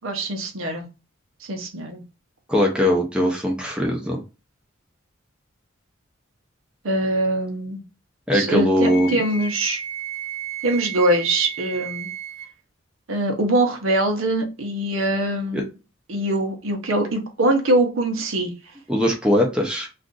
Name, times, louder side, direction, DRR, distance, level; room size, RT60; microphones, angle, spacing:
voice 1, 0.0-0.9 1.4-2.0 6.8-7.8 8.3-9.8 10.6-12.1 13.1-15.7 16.1-18.5, right 1 dB, 80° right, 0.8 m, -23 dB
voice 2, 2.5-4.2 8.3-9.2 15.5-15.6 18.9-19.9, equal, 5° right, 0.5 m, -20 dB
Wind instrument woodwind instrument, 8.9-12.5, right 7 dB, 45° right, 0.6 m, -33 dB
2.5 x 2.4 x 3.7 m
head